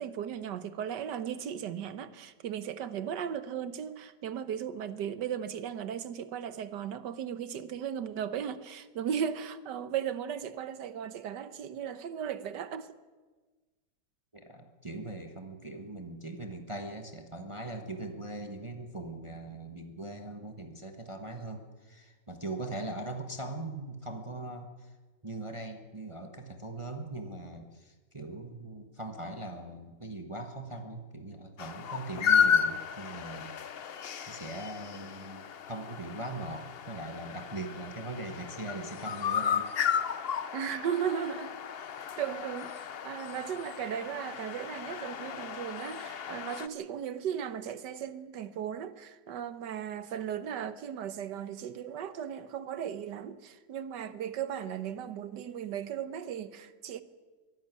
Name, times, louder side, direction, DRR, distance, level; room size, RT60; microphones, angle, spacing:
voice 1, 0.0-12.9 40.5-41.6 42.2-57.0, right 8 dB, 75° right, 1.6 m, -36 dB
voice 2, 14.3-24.9 25.2-33.5 34.3-39.8, right 2 dB, 20° right, 1.3 m, -40 dB
sound 1, 31.6-46.7, left 7 dB, 55° left, 0.6 m, -33 dB
23.0 x 12.0 x 9.5 m
omnidirectional pair, 1.9 m